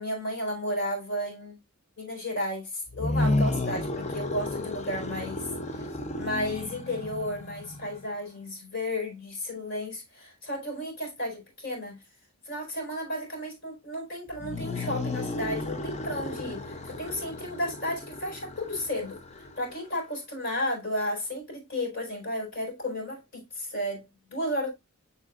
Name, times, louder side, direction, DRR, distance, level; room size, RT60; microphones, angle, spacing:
voice 1, 0.0-1.6 2.0-5.5 5.8-5.9 6.2-12.0 12.4-24.7, left 1 dB, 55° left, 4.4 m, -33 dB
sound 1, 2.9-8.1 14.3-20.0, left 2 dB, 30° left, 0.6 m, -33 dB
7.3 x 6.6 x 2.4 m
head